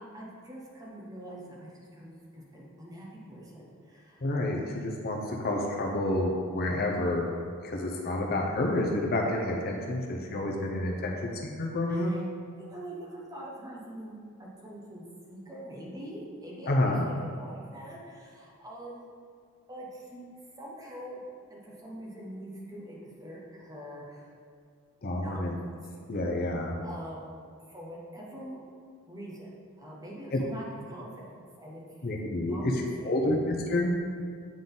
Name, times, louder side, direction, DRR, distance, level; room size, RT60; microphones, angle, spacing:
voice 1, 0.0-4.2 11.9-12.3 12.6-19.1 19.7-20.3 20.6-21.2 21.5-24.3 25.2-25.9 26.8-27.4 27.6-28.6 29.1-31.8 32.5-33.1, right 1 dB, 15° right, -4 dB, 1.0 m, -44 dB
voice 2, 4.2-7.2 7.6-12.1 16.7-17.1 25.0-25.6 26.1-26.8 30.3-30.4 32.0-32.7 33.0-33.9, left 1 dB, 45° left, 0 dB, 0.6 m, -29 dB
8.8 x 3.8 x 3.9 m, 2.1 s
head